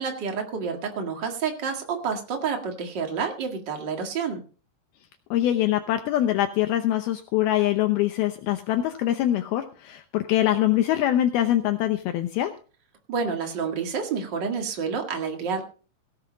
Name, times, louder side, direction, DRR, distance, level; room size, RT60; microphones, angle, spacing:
voice 1, 0.0-4.4 13.1-15.6, right 5 dB, 75° right, 3 dB, 1.0 m, -29 dB
voice 2, 5.3-12.5, left 13 dB, 85° left, 7 dB, 2.2 m, -23 dB
17.5 x 7.9 x 5.1 m, 0.38 s
omnidirectional pair, 5.5 m